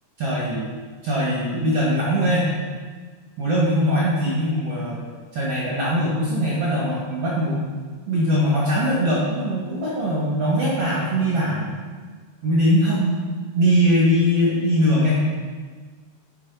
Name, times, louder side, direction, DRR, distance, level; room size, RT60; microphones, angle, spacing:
voice 1, 0.2-0.7 1.0-2.5 3.4-5.0 5.3-7.6 8.1-11.7 12.4-13.2 13.6-15.3, equal, 55° right, -6 dB, 1.7 m, -21 dB
7.8 x 6.1 x 5.7 m, 1.5 s
omnidirectional pair, 5.0 m